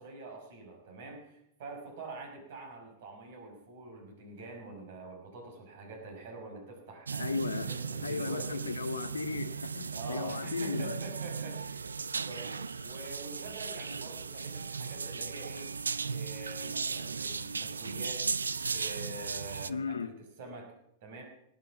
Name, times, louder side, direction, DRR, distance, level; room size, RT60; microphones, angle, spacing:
voice 1, 0.0-8.7 9.9-11.9 12.3-15.7 16.1-18.3 18.7-20.7 21.0-21.2, right 3 dB, 60° right, 5.6 m, -46 dB
sound 1, 7.1-19.7, right 5 dB, 85° right, 0.5 m, -36 dB
voice 2, 7.2-7.7 8.0-11.0 19.7-20.1, left 4 dB, 85° left, 0.7 m, -35 dB
17.5 x 9.9 x 7.2 m
hypercardioid pair, 100°, 0 cm